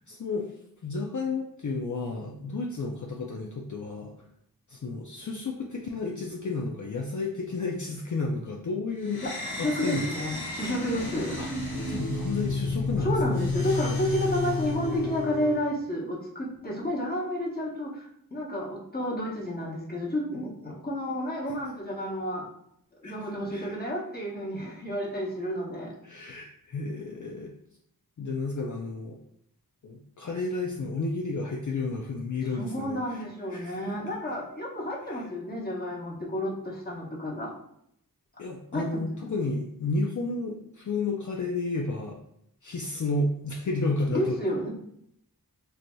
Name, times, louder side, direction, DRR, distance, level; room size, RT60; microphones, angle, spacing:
voice 1, 0.1-0.5 0.8-4.1 4.7-9.2 9.6-10.1 11.4-11.5 11.9-13.1 21.4-21.5 23.0-23.1 23.5-23.8 26.0-27.5 28.2-29.2 29.8-33.9 35.0-35.3 38.4-42.2 42.6-44.4, left 3 dB, 55° left, -1 dB, 0.4 m, -32 dB
sound 1, 9.1-15.7, left 3 dB, 90° left, 0.9 m, -31 dB
voice 2, 9.2-11.4 13.0-22.5 23.0-25.9 32.5-37.5 38.7-39.0 44.1-44.7, equal, 25° left, -4 dB, 1.0 m, -31 dB
4.5 x 2.6 x 2.2 m, 0.73 s
wide cardioid pair, 50°, 37 cm